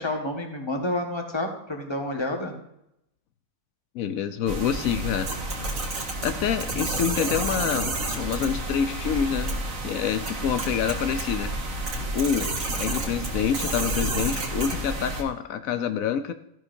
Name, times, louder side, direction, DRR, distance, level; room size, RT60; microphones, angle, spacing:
voice 1, 0.0-2.5, left 1 dB, 20° left, 2 dB, 1.8 m, -29 dB
voice 2, 3.9-5.3 6.2-11.5 12.1-12.5 12.8-16.3, left 8 dB, 80° left, 10 dB, 1.1 m, -27 dB
sound 1, 4.5-15.2, right 2 dB, 75° right, 2.0 m, -30 dB
13.5 x 11.0 x 2.7 m, 0.81 s
omnidirectional pair, 1.4 m